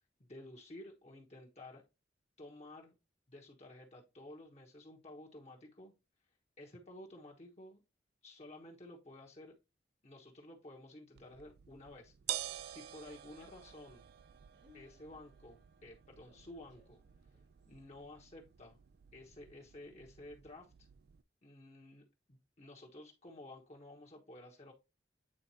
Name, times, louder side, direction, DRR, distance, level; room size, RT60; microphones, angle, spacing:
voice 1, 0.2-1.8 2.4-2.9 3.3-5.9 6.6-7.8 8.2-9.5 10.0-12.1 12.6-14.0 14.7-17.0 17.7-18.8 19.1-20.7 21.4-24.7, left 1 dB, 40° left, -1 dB, 1.2 m, -53 dB
sound 1, 11.2-21.2, right 12 dB, 65° right, 0.4 m, -49 dB
Laughter, 12.7-17.8, left 3 dB, 85° right, 4.3 m, -69 dB
8.7 x 3.8 x 2.9 m, 0.27 s
head